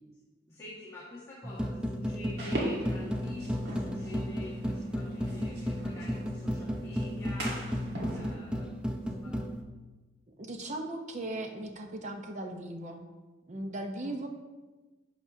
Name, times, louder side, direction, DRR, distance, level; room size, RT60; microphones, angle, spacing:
voice 1, 0.5-7.6 8.1-9.5 14.1-14.3, left 1 dB, 15° left, -9 dB, 1.6 m, -47 dB
sound 1, 1.4-9.6, equal, 5° right, 0.5 m, -34 dB
sound 2, 2.4-8.4, right 1 dB, 60° right, 1.5 m, -40 dB
voice 2, 10.4-13.1 13.5-14.3, right 1 dB, 40° right, 4 dB, 0.7 m, -38 dB
10.5 x 6.0 x 2.7 m, 1.2 s
head